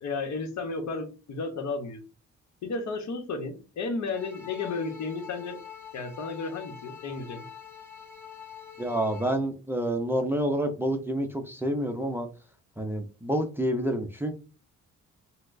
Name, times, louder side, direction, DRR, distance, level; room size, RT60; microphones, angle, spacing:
voice 1, 0.0-2.0 2.6-5.6 5.9-7.5, left 3 dB, 65° left, 6 dB, 0.8 m, -33 dB
sound 1, 4.1-9.3, left 8 dB, 10° left, 1.5 m, -45 dB
voice 2, 8.8-12.3 12.8-14.3, right 1 dB, 10° right, 4 dB, 0.5 m, -28 dB
4.2 x 2.0 x 2.5 m, 0.34 s
cardioid pair, 90°, 30 cm